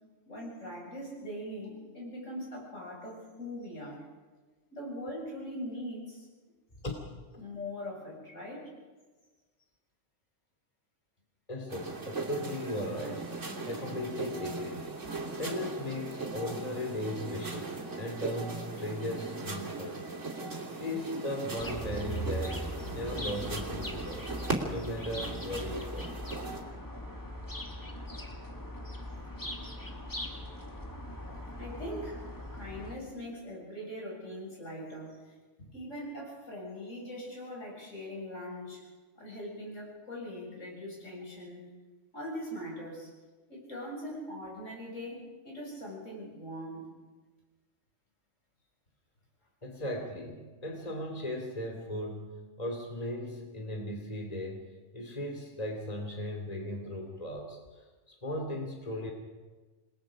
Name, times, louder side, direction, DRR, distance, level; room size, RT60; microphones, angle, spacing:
voice 1, 0.3-4.0 4.7-6.3 7.4-8.7 31.6-32.2 32.5-38.8 39.2-41.6 42.1-43.1 43.5-46.8, equal, 85° left, -2 dB, 7.6 m, -41 dB
voice 2, 11.5-13.3 13.7-15.0 15.4-20.1 20.7-22.6 22.9-24.3 24.7-26.2 49.6-54.6 54.9-59.1, left 1 dB, 30° left, 2 dB, 2.9 m, -37 dB
sound 1, 11.7-26.6, right 3 dB, 75° right, 3.4 m, -38 dB
sound 2, 21.6-33.0, equal, 15° left, 1.9 m, -40 dB
28.0 x 21.0 x 5.1 m, 1.3 s
omnidirectional pair, 1.3 m